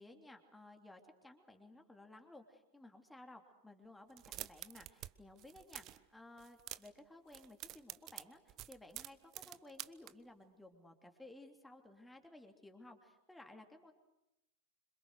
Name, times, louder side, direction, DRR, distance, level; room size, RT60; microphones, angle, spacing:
voice 1, 0.0-13.9, left 2 dB, 5° left, 4 dB, 3.1 m, -57 dB
sound 1, 4.1-5.1 5.4-6.0 6.4-7.0 7.3-10.1, right 14 dB, 35° right, 0.9 m, -48 dB
26.5 x 26.5 x 6.6 m, 0.90 s
figure-of-eight pair, 90°, 0 cm